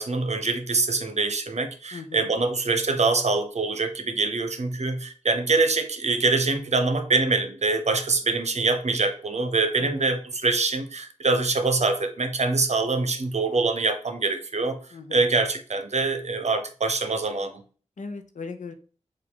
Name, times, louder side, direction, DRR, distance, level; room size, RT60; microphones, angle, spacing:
voice 1, 0.0-14.8 15.1-17.6, right 3 dB, 65° right, 7 dB, 0.8 m, -24 dB
voice 2, 1.9-2.3 9.8-10.1 14.9-15.3 18.0-18.7, left 4 dB, 85° left, 7 dB, 0.6 m, -38 dB
4.7 x 2.4 x 3.8 m, 0.39 s
wide cardioid pair, 60°, 12 cm